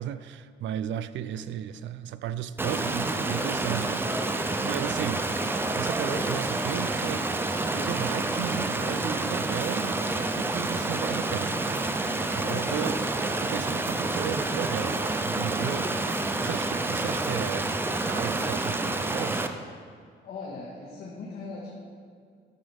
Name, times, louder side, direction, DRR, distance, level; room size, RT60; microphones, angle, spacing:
voice 1, 0.0-4.4 4.6-5.3 5.7-7.3 7.7-12.9 13.4-19.4, right 10 dB, 75° right, 0.5 m, -35 dB
Stream, 2.6-19.5, right 2 dB, 10° right, 0.4 m, -28 dB
sound 1, 9.6-10.0 10.6-11.0 11.7-11.9 12.8-13.3 13.8-14.2 14.9-15.3 16.0-16.3 17.2-17.7 18.3-18.6, right 3 dB, 40° right, 2.6 m, -51 dB
voice 2, 12.4-12.9 20.2-21.7, left 3 dB, 55° left, 1.8 m, -38 dB
12.5 x 9.6 x 3.5 m
cardioid pair, 160°, 19 cm